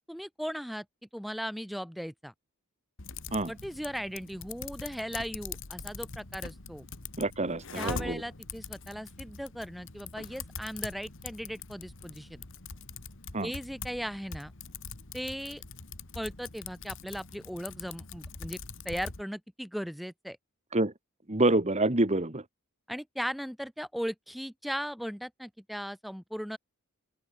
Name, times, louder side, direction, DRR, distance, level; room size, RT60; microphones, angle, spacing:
voice 1, 0.1-0.9 1.1-2.3 3.5-6.8 7.8-12.4 13.4-14.5 15.1-15.6 16.2-18.6 18.9-20.4 22.9-26.6, equal, ahead, 2.0 m, -37 dB
Typing, 3.0-19.2, left 5 dB, 60° left, 2.2 m, -43 dB
voice 2, 7.2-8.2 13.3-13.5 20.7-20.9 21.3-22.4, right 2 dB, 30° right, 1.8 m, -27 dB
open air
head